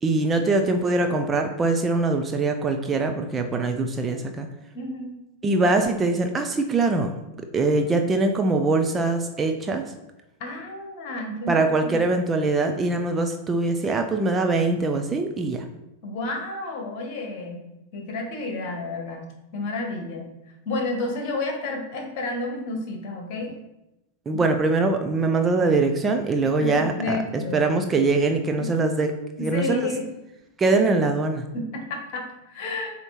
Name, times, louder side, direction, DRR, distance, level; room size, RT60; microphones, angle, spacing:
voice 1, 0.0-4.5 5.4-7.1 7.5-9.8 11.5-15.6 24.3-29.1 29.4-29.9 30.6-31.5, right 3 dB, 20° right, 5 dB, 0.5 m, -23 dB
voice 2, 4.7-5.2 10.4-12.1 16.0-17.6 17.9-19.3 19.5-20.3 20.6-23.5 24.3-24.4 26.6-27.7 28.6-28.7 29.4-30.0 31.5-33.0, left 2 dB, 45° left, 2 dB, 1.6 m, -31 dB
7.7 x 2.9 x 4.3 m, 0.92 s
figure-of-eight pair, 90°, 0 cm